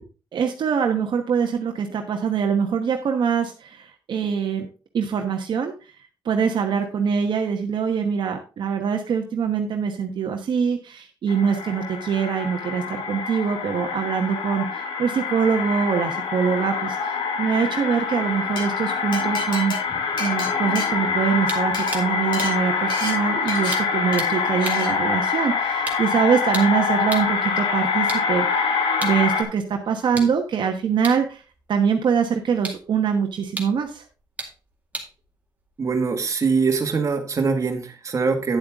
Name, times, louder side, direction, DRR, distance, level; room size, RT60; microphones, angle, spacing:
voice 1, 0.3-4.7 4.9-5.9 6.2-19.7 20.2-28.5 29.0-31.4 31.7-34.0, right 6 dB, 65° right, 3 dB, 1.1 m, -24 dB
sound 1, 11.3-29.4, left 5 dB, 85° left, 1.7 m, -25 dB
Glass, 18.3-18.6 19.1-21.4 21.7-21.9 22.3-22.5 22.9-23.1 23.5-23.7 24.1-24.3 24.6-24.9, left 2 dB, 65° left, 4.7 m, -31 dB
sound 2, 21.5-27.4 27.9-36.4, right 3 dB, 20° right, 2.2 m, -38 dB
voice 2, 35.8-38.6, right 4 dB, 35° right, 4 dB, 1.7 m, -23 dB
9.6 x 8.0 x 3.5 m, 0.33 s
cardioid pair, 125°, 9 cm